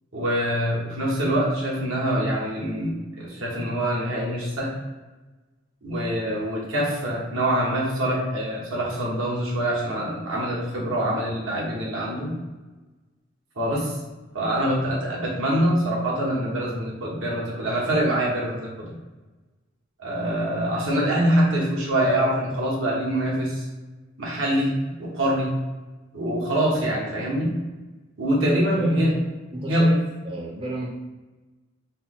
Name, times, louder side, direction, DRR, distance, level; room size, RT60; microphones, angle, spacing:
voice 1, 0.1-4.8 5.8-12.3 13.6-14.0 14.3-18.9 20.0-23.7 24.2-25.6 26.1-27.5 28.2-29.1 29.6-29.9, right 1 dB, 85° right, -4 dB, 1.2 m, -24 dB
voice 2, 28.7-29.1 29.5-30.9, right 1 dB, 25° right, -3 dB, 0.5 m, -33 dB
4.1 x 2.1 x 3.7 m, 1.2 s
head